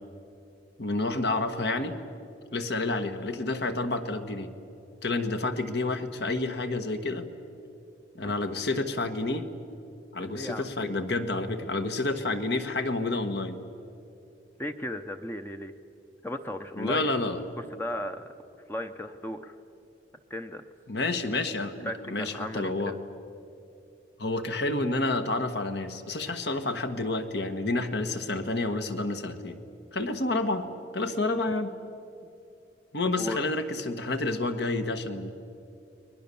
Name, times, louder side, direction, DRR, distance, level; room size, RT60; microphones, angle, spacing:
voice 1, 0.8-1.9 2.5-4.5 5.0-7.3 8.1-9.5 10.1-13.6 16.8-17.4 20.9-23.0 24.2-29.6 29.9-30.7 30.9-31.8 32.9-35.3, left 2 dB, 60° left, 8 dB, 1.5 m, -29 dB
voice 2, 10.2-10.7 14.6-15.7 16.2-17.1 17.6-18.3 18.7-19.5 20.3-20.6 21.8-23.0 33.2-33.5, left 1 dB, 10° left, 7 dB, 0.7 m, -36 dB
30.0 x 21.5 x 7.0 m, 2.8 s
head